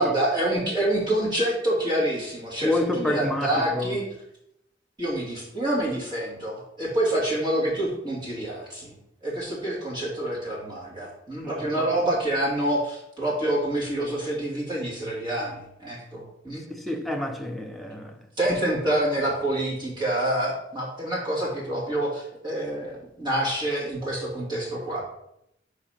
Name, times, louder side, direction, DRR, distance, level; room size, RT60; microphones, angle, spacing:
voice 1, 0.0-4.0 5.0-8.9 9.2-16.6 18.4-25.0, right 1 dB, 25° right, 2.4 m, -27 dB
voice 2, 2.6-4.0 11.4-11.9 16.7-18.2, left 1 dB, ahead, 0.6 m, -29 dB
5.0 x 4.7 x 5.7 m
head